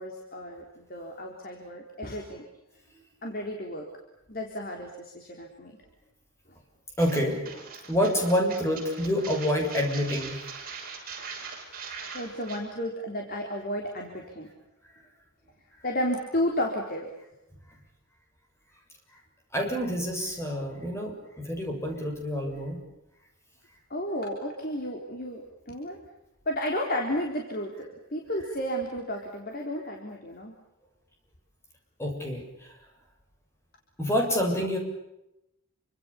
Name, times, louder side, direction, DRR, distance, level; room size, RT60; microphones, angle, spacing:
voice 1, 0.0-2.4 3.2-3.9 4.3-5.7 12.1-14.5 15.8-17.1 23.9-25.4 25.7-26.0 26.5-30.5, equal, 40° left, 1 dB, 3.8 m, -32 dB
voice 2, 7.0-10.6 19.5-22.8 32.0-32.7 34.0-34.8, equal, 10° left, 2 dB, 7.0 m, -28 dB
sound 1, 7.0-12.6, right 5 dB, 40° right, 7.1 m, -41 dB
28.0 x 25.5 x 7.2 m, 0.89 s
head